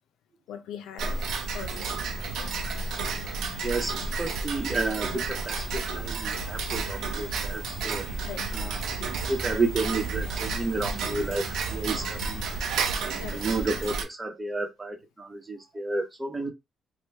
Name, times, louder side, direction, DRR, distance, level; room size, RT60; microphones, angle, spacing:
voice 1, 0.5-1.2 1.5-2.0 2.3-2.6 8.2-8.6 13.2-13.4, left 8 dB, 85° left, 0.5 m, -41 dB
Tick-tock, 1.0-14.0, right 4 dB, 80° right, 0.7 m, -31 dB
sound 1, 1.8-12.9, left 3 dB, 60° left, 0.8 m, -45 dB
voice 2, 3.6-8.0 8.5-8.8 9.3-12.5 13.0-16.5, right 3 dB, 20° right, 1.1 m, -31 dB
2.9 x 2.4 x 3.4 m
cardioid pair, 90°, 0 cm